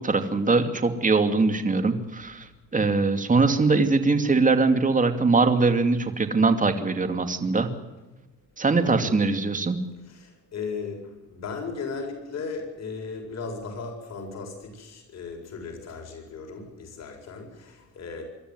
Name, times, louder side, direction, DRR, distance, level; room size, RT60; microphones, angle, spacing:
voice 1, 0.0-2.5 2.7-7.7 8.6-9.8, right 3 dB, 25° right, 8 dB, 2.6 m, -22 dB
voice 2, 8.8-9.2 10.1-18.2, left 4 dB, 60° left, 2 dB, 8.0 m, -36 dB
24.5 x 14.0 x 9.5 m, 1.1 s
cardioid pair, 90°, 30 cm